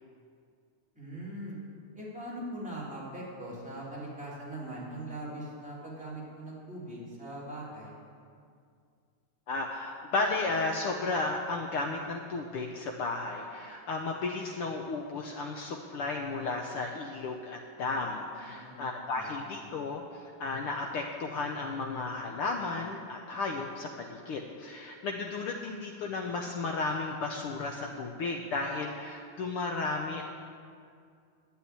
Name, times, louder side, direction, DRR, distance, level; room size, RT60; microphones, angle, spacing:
voice 1, 0.9-1.6 1.9-7.9 18.5-19.7, right 1 dB, 5° right, -8 dB, 3.0 m, -41 dB
voice 2, 9.5-30.2, left 3 dB, 85° left, 1 dB, 1.2 m, -34 dB
11.0 x 7.2 x 9.2 m, 2.3 s
omnidirectional pair, 3.4 m